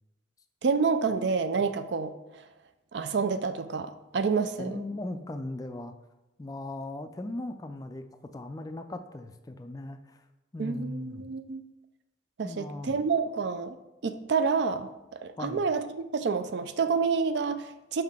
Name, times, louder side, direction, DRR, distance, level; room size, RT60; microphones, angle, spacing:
voice 1, 0.6-2.5 2.9-4.8 10.6-11.6 12.4-13.8 14.0-15.8 16.1-18.0, right 5 dB, 60° right, 10 dB, 0.4 m, -28 dB
voice 2, 4.6-5.9 6.4-8.0 8.3-10.3 10.5-11.3 12.4-13.0 15.4-15.7, left 1 dB, 20° left, 8 dB, 0.3 m, -38 dB
5.7 x 5.3 x 3.6 m, 1.0 s
head